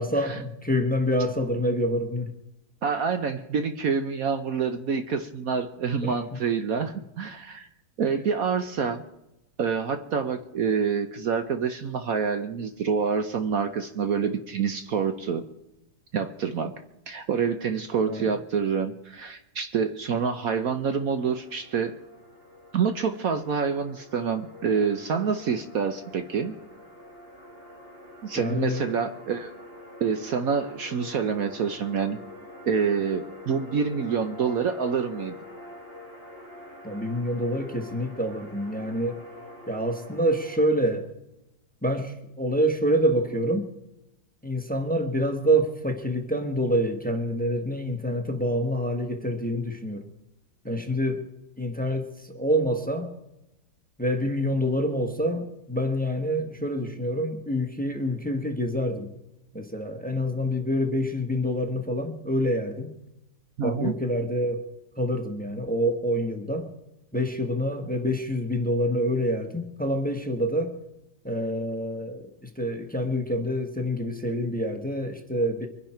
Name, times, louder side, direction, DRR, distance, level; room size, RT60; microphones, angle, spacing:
voice 1, 0.0-2.3 6.0-6.1 18.0-18.3 28.4-28.8 36.8-39.2 39.7-41.1 41.8-43.7 44.4-50.0 50.6-51.2 51.6-53.1 54.0-59.1 59.5-62.9 63.6-64.7 65.0-66.7 67.1-70.7 71.2-75.7, equal, 5° left, 5 dB, 1.2 m, -27 dB
voice 2, 2.8-7.7 8.0-9.0 9.6-15.4 16.1-16.7 17.1-21.9 22.7-26.5 28.2-29.5 30.0-32.2 32.6-35.3 63.6-63.9, right 6 dB, 60° right, 8 dB, 1.1 m, -27 dB
sound 1, 20.6-40.6, left 1 dB, 30° right, 3.5 m, -45 dB
23.5 x 10.5 x 4.5 m, 0.91 s
omnidirectional pair, 1.9 m